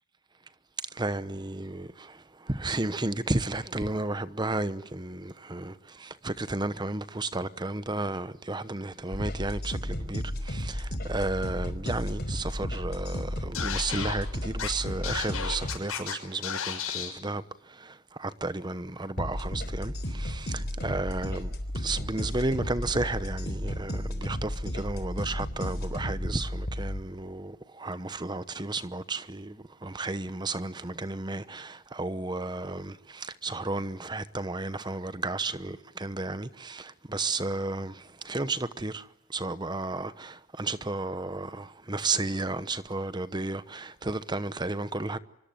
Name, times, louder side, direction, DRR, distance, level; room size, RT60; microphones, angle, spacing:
voice 1, 0.9-45.2, right 2 dB, 20° right, 0.9 m, -33 dB
sound 1, 9.1-15.8 19.2-27.0, equal, 45° left, 3.6 m, -33 dB
Scratching (performance technique), 13.5-14.1 14.6-14.7 15.0-16.1 16.4-17.1, left 7 dB, 85° left, 6.4 m, -32 dB
25.5 x 24.0 x 9.1 m
head